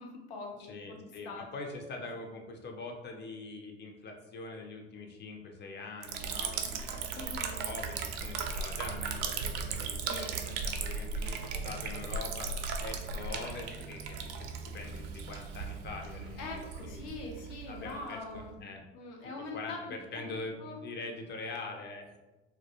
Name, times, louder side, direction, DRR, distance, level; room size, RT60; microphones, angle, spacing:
voice 1, 0.0-1.0 1.2-1.5 7.1-7.6 10.0-10.3 16.4-18.5 18.9-20.3 20.6-20.8, left 3 dB, 65° left, 1 dB, 0.7 m, -43 dB
voice 2, 0.7-12.5 12.8-17.0 17.7-18.8 19.5-22.2, left 3 dB, 30° left, 3 dB, 0.5 m, -43 dB
Liquid, 6.0-18.5, right 5 dB, 65° right, 0.5 m, -37 dB
2.3 x 2.2 x 2.8 m, 1.1 s
hypercardioid pair, 70°, 35 cm